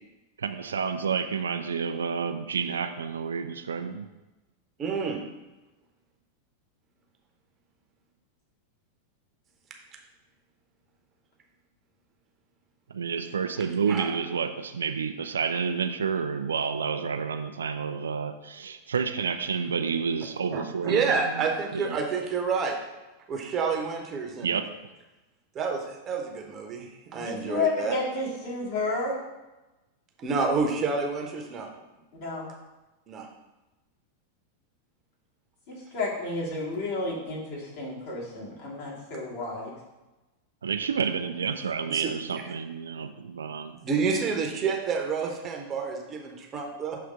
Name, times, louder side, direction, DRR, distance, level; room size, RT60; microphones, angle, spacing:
voice 1, 0.4-4.0 12.9-21.5 21.7-21.9 24.4-24.7 40.6-43.8, right 6 dB, 70° right, 8 dB, 0.4 m, -29 dB
voice 2, 4.8-5.2 13.9-14.1 20.5-22.8 23.3-24.6 25.5-27.9 30.2-31.7 33.1-33.3 41.9-42.0 43.7-47.0, right 5 dB, 30° right, 2 dB, 0.9 m, -29 dB
voice 3, 27.1-29.2 32.2-32.5 35.7-39.7, left 3 dB, 50° left, -5 dB, 2.2 m, -31 dB
6.6 x 3.3 x 4.9 m, 1.1 s
figure-of-eight pair, 90°, 0 cm